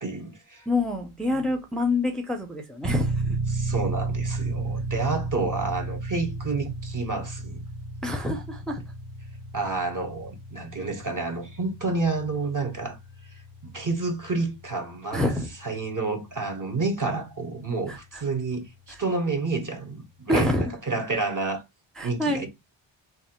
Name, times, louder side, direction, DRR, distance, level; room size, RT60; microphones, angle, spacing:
voice 1, 0.0-0.7 1.3-1.4 3.5-7.6 9.5-13.0 13.6-15.3 15.6-21.6 22.0-22.5, right 3 dB, 40° right, 1.3 m, -29 dB
voice 2, 0.7-3.4 8.0-8.8 15.1-15.5 17.9-18.2 18.9-19.0 20.3-20.7 22.0-22.5, left 1 dB, ahead, 0.7 m, -27 dB
sound 1, 2.8-17.3, right 2 dB, 20° right, 0.9 m, -33 dB
3.3 x 2.6 x 4.4 m
wide cardioid pair, 80°, 49 cm